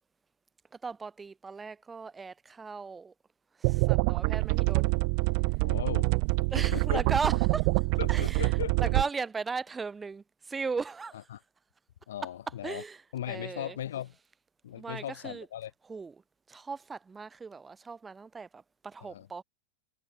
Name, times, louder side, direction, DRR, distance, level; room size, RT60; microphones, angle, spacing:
voice 1, 0.8-3.1 3.6-4.9 6.5-7.7 8.1-8.5 8.8-11.2 12.6-13.0 13.3-13.8 14.7-15.5 15.9-16.1 16.5-19.4, right 4 dB, 15° right, 2.8 m, -37 dB
sound 1, 3.6-9.0, right 40 dB or more, 45° right, 0.6 m, -26 dB
voice 2, 5.6-6.1 6.4-7.1 8.0-8.9 11.3-11.4 12.1-12.8 13.1-14.2 14.6-15.7 19.0-19.3, left 11 dB, 60° left, 2.2 m, -38 dB
figure-of-eight pair, 90°, 0 cm